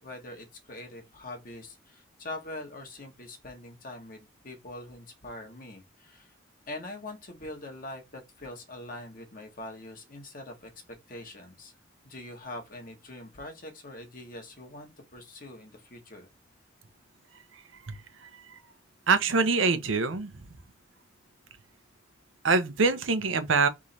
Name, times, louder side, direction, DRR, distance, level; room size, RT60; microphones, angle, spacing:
voice 1, 0.0-6.3 6.7-10.7 11.1-11.7 12.0-16.3, left 2 dB, 45° left, 1.3 m, -43 dB
voice 2, 17.9-18.3 19.1-20.4 22.4-23.7, right 4 dB, 90° right, 0.8 m, -25 dB
3.6 x 3.2 x 4.0 m
head